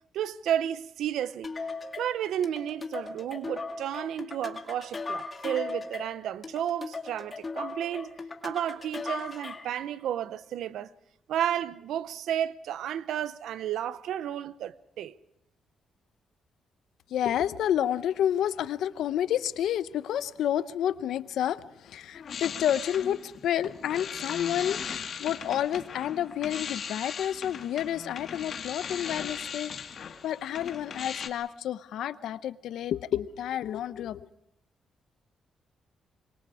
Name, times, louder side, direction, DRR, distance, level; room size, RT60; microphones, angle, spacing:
voice 1, 0.1-1.5 2.0-8.1 8.4-10.9 11.3-15.2, right 10 dB, 90° right, 0.7 m, -32 dB
sound 1, 1.4-9.8, left 3 dB, 35° left, 2.2 m, -38 dB
voice 2, 17.1-29.7 30.2-34.3, left 10 dB, 90° left, 0.8 m, -30 dB
sound 2, 21.9-31.3, left 7 dB, 60° left, 1.9 m, -38 dB
26.0 x 23.5 x 4.9 m
cardioid pair, 105°, 0 cm